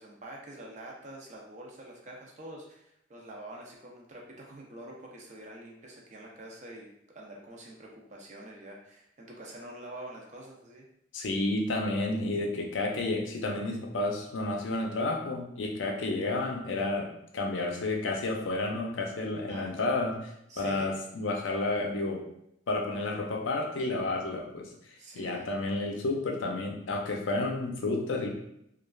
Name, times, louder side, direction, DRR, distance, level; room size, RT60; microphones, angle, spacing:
voice 1, 0.0-10.9 19.5-19.8 20.5-20.9 25.0-25.5, right 1 dB, 40° right, -1 dB, 0.5 m, -46 dB
voice 2, 11.1-17.1 17.3-20.3 20.6-22.2 22.7-28.3, left 2 dB, 90° left, 1 dB, 0.5 m, -31 dB
3.1 x 2.4 x 2.3 m, 0.78 s
head